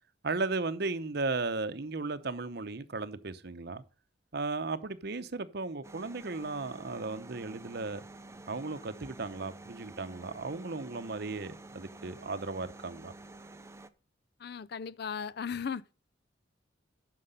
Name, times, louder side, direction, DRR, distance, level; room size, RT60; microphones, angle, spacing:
voice 1, 0.2-3.8 4.3-8.0 8.5-13.1, right 3 dB, 55° right, 0.8 m, -35 dB
sound 1, 5.8-13.9, right 2 dB, 15° right, 0.5 m, -50 dB
voice 2, 14.4-15.9, left 6 dB, 55° left, 0.4 m, -37 dB
9.8 x 6.5 x 5.2 m
head